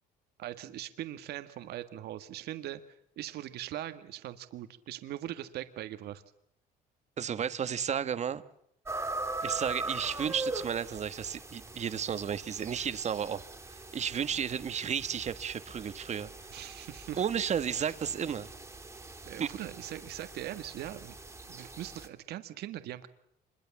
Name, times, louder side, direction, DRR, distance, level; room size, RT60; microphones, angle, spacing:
voice 1, 0.4-2.8 3.2-6.2 16.5-17.2 17.7-17.9 19.2-21.1 21.5-23.1, right 13 dB, 75° right, 10 dB, 1.7 m, -41 dB
voice 2, 7.2-8.4 9.4-13.4 13.7-16.3 17.2-18.5 19.4-19.5, right 8 dB, 40° right, 12 dB, 1.5 m, -33 dB
sound 1, 8.9-22.1, right 2 dB, 15° right, 3.0 m, -41 dB
26.0 x 22.0 x 7.2 m, 0.73 s
cardioid pair, 110°, 17 cm